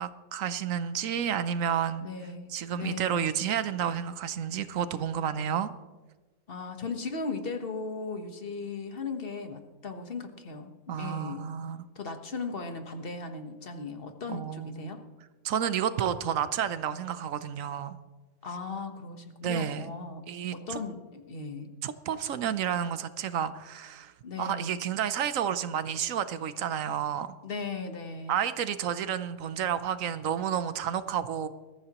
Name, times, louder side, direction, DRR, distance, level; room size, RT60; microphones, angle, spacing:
voice 1, 0.0-2.1 2.5-5.7 10.9-11.8 14.3-14.9 15.4-18.0 19.4-19.9 20.3-20.8 21.8-27.3 28.3-31.5, right 9 dB, 75° right, 13 dB, 1.1 m, -31 dB
voice 2, 2.0-3.3 6.5-10.7 11.0-11.5 11.9-15.0 18.4-20.2 20.5-21.7 24.2-24.8 27.4-28.4, left 4 dB, 45° left, 6 dB, 1.4 m, -37 dB
21.0 x 14.0 x 3.0 m, 1.2 s
omnidirectional pair, 1.4 m